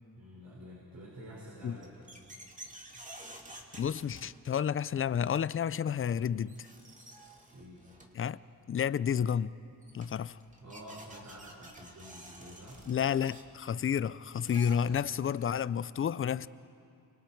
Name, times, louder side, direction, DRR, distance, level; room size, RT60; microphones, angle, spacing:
voice 1, 0.1-2.1 7.5-7.8 10.6-12.8, equal, 55° right, 5.9 m, -49 dB
sound 1, 1.6-4.8 6.1-6.2 6.4-8.3 9.4-9.5 9.8-15.3, right 1 dB, 20° right, 2.5 m, -51 dB
voice 2, 3.8-6.6 8.2-8.4 8.7-9.5 9.9-10.4 12.9-16.5, left 8 dB, 40° left, 0.5 m, -30 dB
29.0 x 26.0 x 4.6 m
cardioid pair, 105°, 34 cm